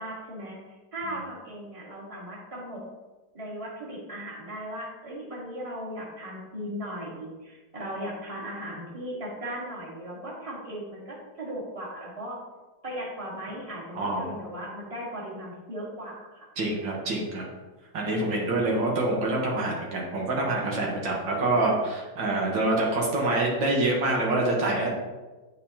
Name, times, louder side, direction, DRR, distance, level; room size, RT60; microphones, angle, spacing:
voice 1, 0.0-2.8 3.3-12.4 12.8-16.5, equal, 20° right, -5 dB, 1.5 m, -37 dB
voice 2, 13.9-14.4 16.6-17.4 17.9-24.9, right 2 dB, 75° right, -2 dB, 2.0 m, -26 dB
8.6 x 5.0 x 2.9 m, 1.2 s
omnidirectional pair, 2.1 m